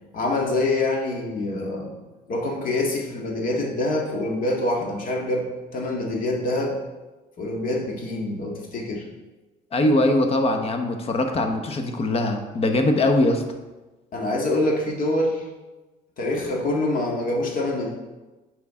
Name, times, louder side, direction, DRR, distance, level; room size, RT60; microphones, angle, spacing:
voice 1, 0.1-1.9 2.3-6.8 7.4-9.1 14.1-15.5 16.2-17.9, left 2 dB, 55° left, -1 dB, 1.9 m, -25 dB
voice 2, 9.7-13.4, left 1 dB, 35° left, 5 dB, 1.0 m, -21 dB
9.1 x 5.0 x 3.7 m, 1.2 s
cardioid pair, 110°, 17 cm